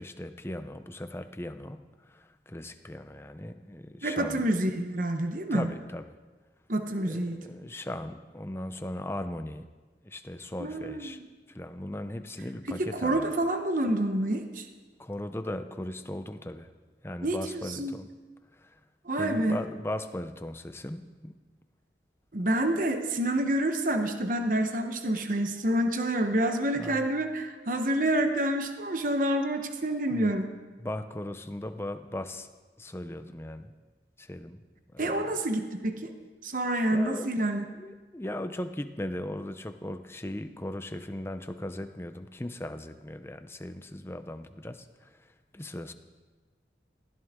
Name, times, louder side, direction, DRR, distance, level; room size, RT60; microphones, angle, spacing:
voice 1, 0.0-4.4 5.5-6.2 7.0-9.7 10.0-11.2 11.5-13.4 15.0-16.7 17.0-18.1 18.6-18.8 19.2-21.4 26.8-27.1 30.1-30.3 30.8-32.5 32.8-33.7 34.2-34.6 34.9-35.3 36.9-37.3 37.8-45.3 45.5-45.9, left 1 dB, 15° left, 9 dB, 0.7 m, -38 dB
voice 2, 4.0-5.7 6.7-7.4 10.6-11.3 12.7-14.6 17.2-17.9 19.0-19.6 22.3-30.5 35.0-36.1 36.4-37.6, right 1 dB, 50° right, 6 dB, 1.1 m, -28 dB
22.0 x 16.0 x 3.7 m, 1.3 s
head